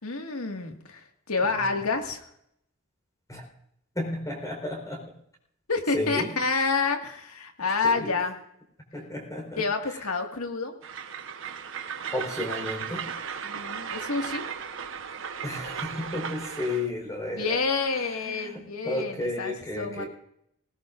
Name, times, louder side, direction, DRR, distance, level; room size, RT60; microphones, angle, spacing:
voice 1, 0.0-2.2 5.7-8.3 9.6-10.7 13.4-14.4 17.3-20.0, left 4 dB, 85° left, 4 dB, 1.9 m, -28 dB
voice 2, 1.4-1.8 3.3-3.4 3.9-5.0 5.9-6.3 7.8-8.1 8.9-9.6 12.1-13.1 15.4-17.6 18.0-20.1, left 1 dB, 15° left, 1 dB, 4.2 m, -33 dB
Train, 10.8-16.9, right 7 dB, 60° right, 1.1 m, -36 dB
19.0 x 18.5 x 2.6 m, 0.73 s
head